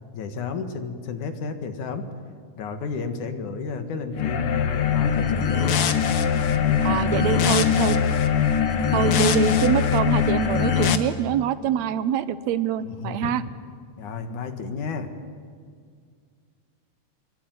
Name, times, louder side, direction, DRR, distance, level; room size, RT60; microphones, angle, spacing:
voice 1, 0.1-2.1 2.6-5.8 6.5-7.7 12.8-13.4 14.0-15.1, left 5 dB, 90° left, 7 dB, 3.3 m, -32 dB
sound 1, 4.1-11.0, left 7 dB, 55° left, 1.8 m, -21 dB
voice 2, 6.8-8.0 8.9-13.4, right 10 dB, 75° right, 14 dB, 2.0 m, -25 dB
24.5 x 23.0 x 9.4 m, 2.1 s
omnidirectional pair, 3.4 m